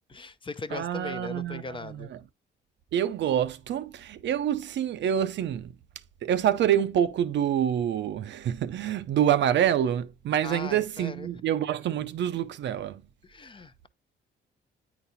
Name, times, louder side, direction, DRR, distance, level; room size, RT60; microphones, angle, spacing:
voice 1, 0.1-2.1 10.4-11.3 13.2-13.9, left 3 dB, 25° left, 0.6 m, -39 dB
voice 2, 0.7-2.2 2.9-5.7 6.2-13.0, right 10 dB, 65° right, 0.6 m, -27 dB
9.3 x 4.0 x 2.7 m
cardioid pair, 90°, 20 cm